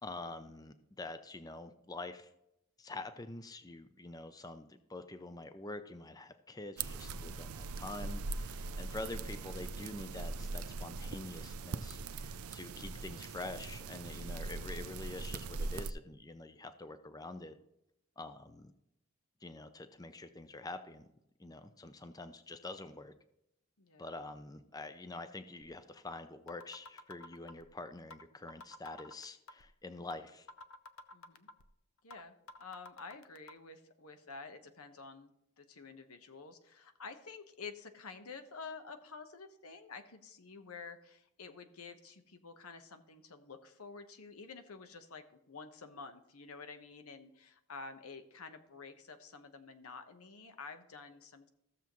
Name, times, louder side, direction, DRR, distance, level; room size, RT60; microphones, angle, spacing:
voice 1, 0.0-2.3 2.8-17.6 18.2-18.7 19.4-21.1 21.4-23.1 24.0-30.5, left 2 dB, 15° left, 10 dB, 0.5 m, -46 dB
sound 1, 6.8-15.9, right 3 dB, 85° right, 0.5 m, -41 dB
voice 2, 23.8-24.1 31.1-31.5 32.0-35.3 35.6-51.5, left 4 dB, 90° left, 8 dB, 1.1 m, -50 dB
sound 2, 25.6-25.7 26.1-26.2 26.5-27.7 28.1-28.2 28.5-29.7 30.1-30.2 30.5-31.7 32.1-32.2 32.5-33.5, left 2 dB, 65° left, 0.7 m, -50 dB
15.5 x 7.0 x 3.1 m, 0.81 s
head